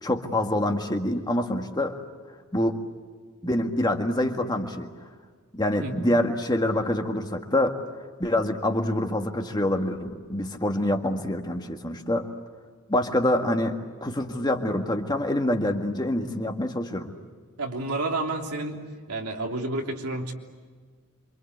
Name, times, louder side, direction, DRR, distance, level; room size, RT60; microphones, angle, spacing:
voice 1, 0.0-1.9 2.5-2.8 3.4-4.9 5.5-7.8 8.2-12.3 12.9-17.1, left 1 dB, 20° left, 4 dB, 1.8 m, -26 dB
voice 2, 17.6-18.8 19.1-20.3, right 2 dB, 85° right, 1 dB, 3.3 m, -30 dB
27.5 x 25.5 x 8.2 m, 1.5 s
head